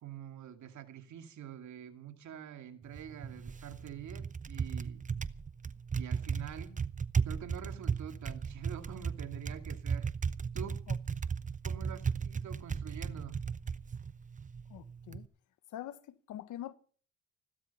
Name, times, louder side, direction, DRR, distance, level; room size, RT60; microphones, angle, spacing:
voice 1, 0.0-5.0 6.0-6.8 7.2-10.1 10.5-10.8 11.6-13.4, right 9 dB, 70° right, 2.4 m, -46 dB
Typing, 2.8-15.3, right 6 dB, 25° right, 0.8 m, -36 dB
voice 2, 14.7-15.3 15.7-16.7, left 12 dB, 85° left, 1.3 m, -44 dB
16.0 x 12.5 x 5.5 m
cardioid pair, 90°, 30 cm